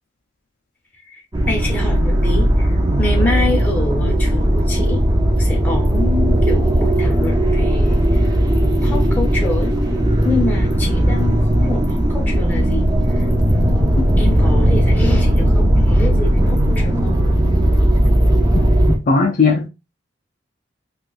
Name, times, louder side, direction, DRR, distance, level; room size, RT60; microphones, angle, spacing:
voice 1, 1.1-5.0 5.4-8.3 8.6-9.8 10.2-17.2, left 2 dB, 10° left, 0.8 m, -27 dB
sound 1, 1.3-19.0, equal, 20° right, 0.5 m, -16 dB
voice 2, 18.5-19.7, left 4 dB, 45° left, 0.4 m, -18 dB
3.8 x 2.4 x 2.4 m
head